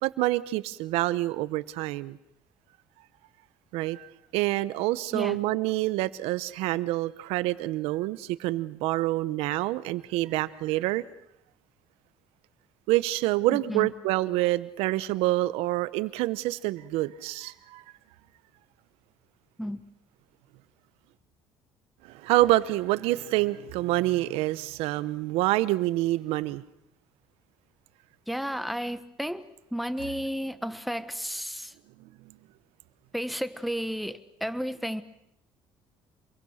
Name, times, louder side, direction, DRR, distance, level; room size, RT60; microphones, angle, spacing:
voice 1, 0.0-2.2 3.7-11.0 12.9-17.8 22.0-26.6, right 17 dB, 85° right, 16 dB, 0.9 m, -27 dB
voice 2, 13.5-13.9 19.6-19.8 28.3-29.4 29.7-31.7 33.1-35.0, equal, ahead, 12 dB, 1.3 m, -32 dB
27.5 x 22.0 x 6.5 m, 0.80 s
cardioid pair, 110°, 10 cm